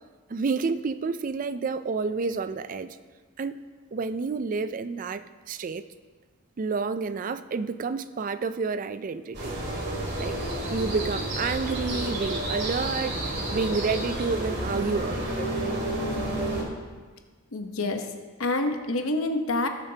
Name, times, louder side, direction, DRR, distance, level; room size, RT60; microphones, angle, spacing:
voice 1, 0.3-3.0 3.4-3.6 3.9-5.2 5.5-5.8 6.6-9.6 10.2-10.4 10.7-13.2 13.5-15.8, right 4 dB, 40° right, 13 dB, 0.4 m, -29 dB
sound 1, 9.3-16.6, right 1 dB, 55° right, 2.3 m, -30 dB
voice 2, 17.5-18.1 18.4-19.7, left 2 dB, 90° left, 6 dB, 1.0 m, -27 dB
19.0 x 6.9 x 2.8 m, 1.4 s
head